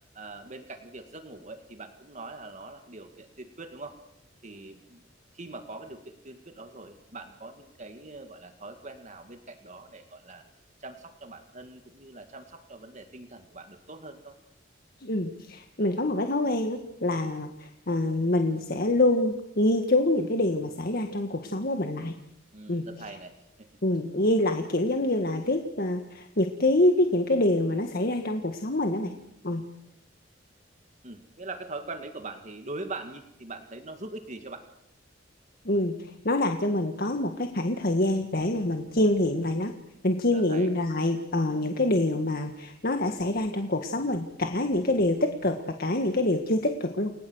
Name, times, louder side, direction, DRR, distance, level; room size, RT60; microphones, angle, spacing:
voice 1, 0.1-4.0 4.4-5.1 5.3-10.4 10.8-14.4 22.5-23.7 31.0-34.7 40.3-40.7, right 2 dB, 40° right, 6 dB, 2.1 m, -42 dB
voice 2, 15.0-22.1 22.7-22.8 23.8-29.1 29.4-29.6 35.6-39.7 40.0-47.1, left 1 dB, 55° left, 6 dB, 1.8 m, -26 dB
29.5 x 20.5 x 8.1 m, 0.82 s
head